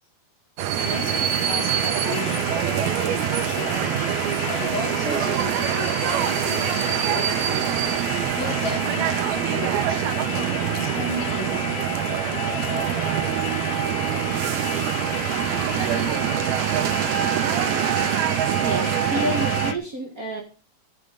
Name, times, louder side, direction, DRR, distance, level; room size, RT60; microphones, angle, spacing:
sound 1, 0.6-19.7, right 11 dB, 90° right, 2.7 m, -24 dB
voice 1, 0.7-7.8 8.4-13.4 14.1-14.6, left 2 dB, 75° left, 6.3 m, -35 dB
sound 2, 0.8-19.8, left 7 dB, 60° left, 2.2 m, -33 dB
voice 2, 18.5-20.4, equal, 65° right, 0.8 m, -29 dB
13.0 x 5.6 x 4.9 m
omnidirectional pair, 4.2 m